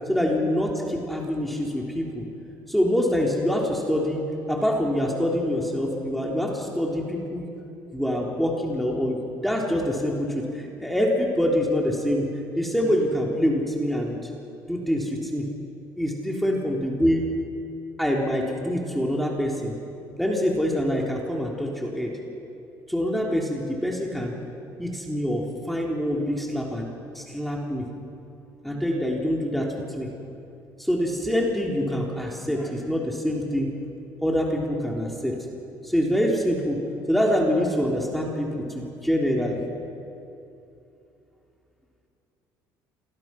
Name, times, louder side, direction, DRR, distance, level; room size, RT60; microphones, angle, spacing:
voice 1, 0.1-2.3 2.7-4.2 4.5-7.5 7.9-12.3 12.6-14.2 14.7-15.5 16.0-17.3 18.0-19.7 20.2-22.1 22.9-24.4 24.8-26.9 27.1-27.9 28.6-30.1 30.8-33.7 34.2-35.4 35.8-36.8 37.1-39.6, equal, ahead, -1 dB, 3.6 m, -25 dB
27.0 x 21.0 x 6.0 m, 2.8 s
supercardioid pair, 85°, 8 cm